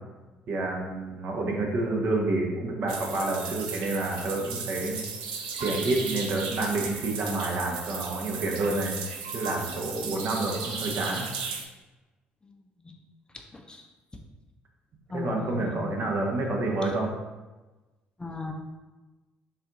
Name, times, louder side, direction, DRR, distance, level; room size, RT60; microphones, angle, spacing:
voice 1, 0.5-5.0 5.6-9.0 9.3-11.3 15.1-17.1, right 2 dB, 50° right, 0 dB, 0.9 m, -28 dB
sound 1, 2.9-11.6, right 5 dB, 75° right, 0.5 m, -36 dB
voice 2, 13.3-13.9 15.1-16.0 18.2-18.5, left 4 dB, 20° left, 2 dB, 0.6 m, -37 dB
4.1 x 2.7 x 3.7 m, 1.2 s
figure-of-eight pair, 50°, 5 cm